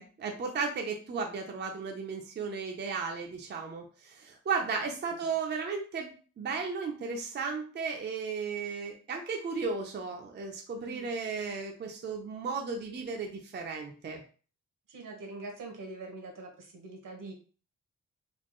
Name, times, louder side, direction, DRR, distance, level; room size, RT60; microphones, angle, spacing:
voice 1, 0.0-14.2, right 5 dB, 35° right, 2 dB, 0.5 m, -35 dB
voice 2, 10.7-11.1 14.9-17.3, right 2 dB, 85° right, 2 dB, 1.2 m, -44 dB
4.3 x 2.4 x 3.0 m, 0.38 s
wide cardioid pair, 175°, 32 cm